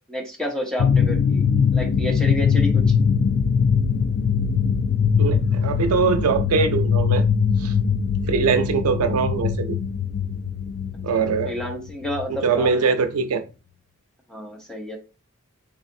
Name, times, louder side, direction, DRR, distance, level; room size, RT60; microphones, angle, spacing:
voice 1, 0.1-1.4 1.7-2.8 11.4-12.9 14.3-15.0, left 1 dB, 5° left, 0.8 m, -30 dB
sound 1, 0.8-12.8, left 6 dB, 45° left, 0.3 m, -21 dB
voice 2, 5.2-7.2 7.6-7.7 8.3-9.8 11.0-11.7 12.3-13.4, right 5 dB, 90° right, 0.5 m, -22 dB
3.8 x 3.2 x 2.6 m
head